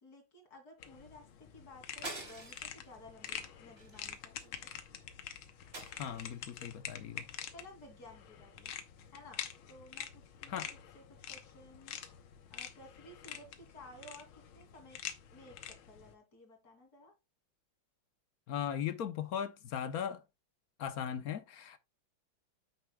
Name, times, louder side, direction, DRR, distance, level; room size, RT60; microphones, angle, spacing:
voice 1, 0.0-4.7 7.5-8.7 9.1-12.0 12.5-15.0 15.3-17.1, left 1 dB, 50° left, 3.1 m, -56 dB
sound 1, 0.8-16.1, left 9 dB, 80° left, 1.8 m, -47 dB
sound 2, 2.0-2.8 3.2-3.4 3.8-4.7 5.7-6.5, right 2 dB, 30° right, 2.8 m, -46 dB
voice 2, 6.0-7.2 10.5-10.7 18.5-20.2 20.8-21.8, left 9 dB, 65° left, 0.9 m, -38 dB
9.3 x 8.6 x 2.2 m
omnidirectional pair, 2.2 m